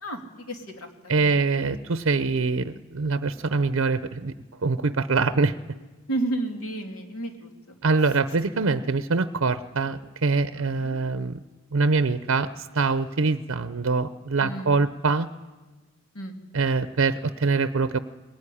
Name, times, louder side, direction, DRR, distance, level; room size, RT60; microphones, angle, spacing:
voice 1, 0.0-1.5 6.1-7.8 10.6-11.0 14.4-14.7 16.1-16.3, right 2 dB, 85° left, 4 dB, 2.7 m, -32 dB
voice 2, 1.1-4.3 4.6-5.6 7.8-11.4 11.7-15.3 16.5-18.0, right 4 dB, 65° right, 12 dB, 0.6 m, -24 dB
20.5 x 17.5 x 9.9 m, 1.3 s
head